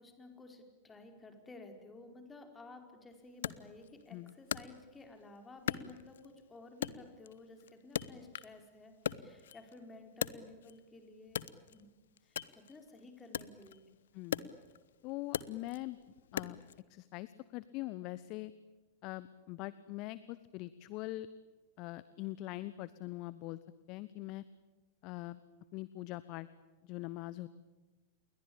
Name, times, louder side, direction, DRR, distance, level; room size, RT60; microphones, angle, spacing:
voice 1, 0.0-11.4 11.7-11.9 12.2-13.9, left 2 dB, 15° left, 5 dB, 4.8 m, -54 dB
Wood, 3.4-5.2 5.7-6.4 6.8-8.6 8.9-10.9 11.3-16.8, left 9 dB, 65° left, 0.9 m, -40 dB
voice 2, 14.1-14.5 15.0-16.0 16.3-16.6 16.9-18.5 19.0-21.3 21.8-23.6 23.9-24.4 25.0-25.4 25.7-26.5 26.8-27.5, left 18 dB, 40° left, 16 dB, 1.0 m, -42 dB
29.0 x 22.0 x 8.7 m, 1.2 s
figure-of-eight pair, 90°, 0 cm